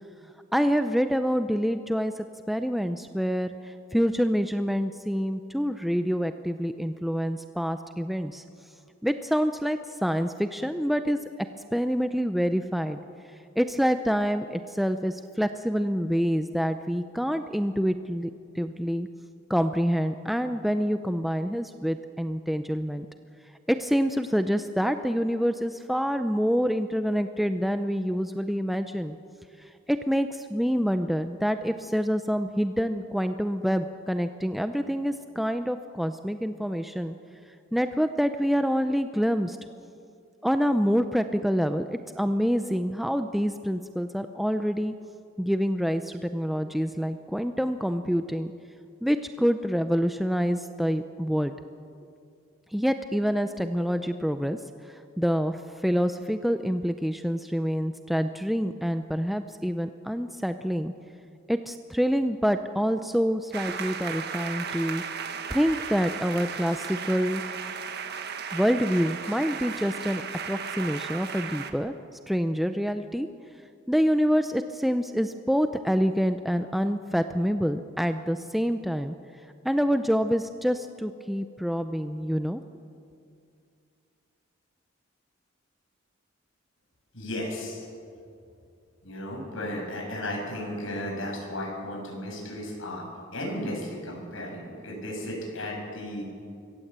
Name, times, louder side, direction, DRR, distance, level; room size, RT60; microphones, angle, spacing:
voice 1, 0.5-8.4 9.0-11.2 11.7-13.0 13.6-19.1 19.5-23.1 23.7-29.2 29.6-37.1 37.7-39.6 40.4-44.9 45.4-48.5 49.0-51.5 52.7-54.6 54.8-60.9 61.5-65.0 65.5-67.4 68.5-71.9 72.3-73.3 73.9-79.1 79.6-82.6, equal, ahead, 8 dB, 0.5 m, -26 dB
sound 1, 63.5-71.7, right 6 dB, 55° right, 1.5 m, -35 dB
voice 2, 87.1-87.9 89.0-93.0 93.3-96.2, left 1 dB, 80° left, 0 dB, 6.6 m, -34 dB
24.0 x 16.5 x 8.1 m, 2.4 s
head